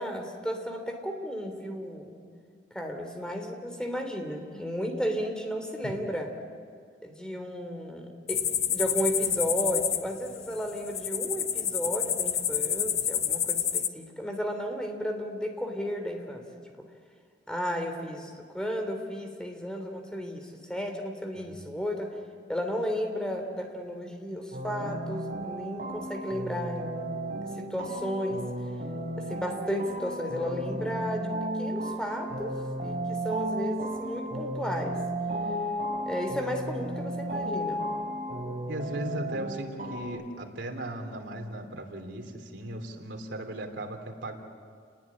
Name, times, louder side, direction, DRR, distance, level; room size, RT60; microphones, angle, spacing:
voice 1, 0.0-2.2 2.7-6.3 7.0-8.4 8.7-16.7 17.5-22.2 22.5-26.8 27.6-28.5 29.2-32.5 32.8-35.0 36.1-37.9, equal, 5° left, 4 dB, 3.0 m, -33 dB
sound 1, 8.3-13.9, left 9 dB, 35° left, 0.9 m, -29 dB
voice 2, 21.3-21.7 38.7-44.4, right 1 dB, 85° right, 4 dB, 3.3 m, -37 dB
sound 2, 24.5-40.0, right 1 dB, 45° right, 6.3 m, -34 dB
29.5 x 20.0 x 9.8 m, 2.1 s
head